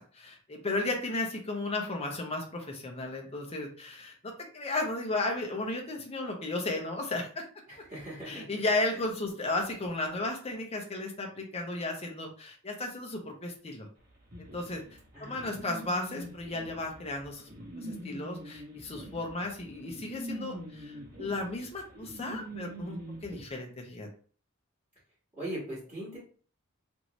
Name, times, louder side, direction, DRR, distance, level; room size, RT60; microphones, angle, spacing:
voice 1, 0.0-7.4 8.3-13.9 14.4-14.8 15.2-17.5 17.8-24.1, left 2 dB, 30° left, 2 dB, 0.7 m, -34 dB
voice 2, 7.7-8.5 8.9-9.0 15.1-15.7 25.4-26.2, right 1 dB, 15° right, -12 dB, 1.6 m, -40 dB
sound 1, 14.3-23.4, right 1 dB, 45° right, 1.0 m, -44 dB
3.0 x 2.6 x 3.0 m, 0.42 s
head